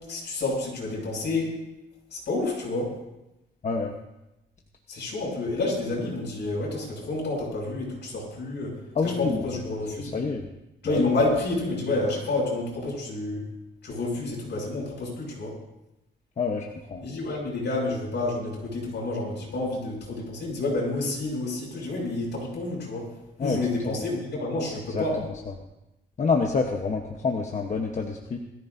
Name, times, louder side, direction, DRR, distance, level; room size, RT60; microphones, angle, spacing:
voice 1, 0.0-1.6 2.1-2.9 4.9-8.8 9.0-10.2 10.8-13.4 13.8-15.5 17.0-23.1 23.4-25.2, left 2 dB, 60° left, -3 dB, 6.6 m, -29 dB
voice 2, 9.0-9.6 10.0-10.5 10.8-11.1 16.4-17.0 23.4-24.0 24.6-25.0 25.5-25.6 26.2-28.4, left 4 dB, 40° left, 1 dB, 1.1 m, -28 dB
21.5 x 14.5 x 2.7 m, 0.94 s
wide cardioid pair, 150°, 19 cm